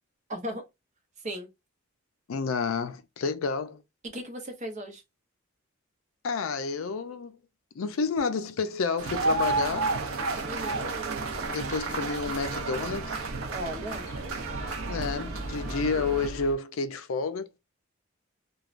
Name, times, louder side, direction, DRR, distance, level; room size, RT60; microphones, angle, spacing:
voice 1, 0.3-0.6 1.2-1.5 4.1-5.0 10.4-10.9 13.5-14.1, equal, 35° right, 0.7 m, -36 dB
voice 2, 2.3-3.8 6.2-7.4 7.8-9.9 11.5-13.2 14.9-17.5, left 4 dB, 75° left, 0.4 m, -30 dB
sound 1, 9.0-16.3, right 3 dB, 75° right, 0.6 m, -31 dB
sound 2, 11.2-16.5, equal, 40° left, 1.2 m, -42 dB
3.1 x 2.2 x 2.4 m
head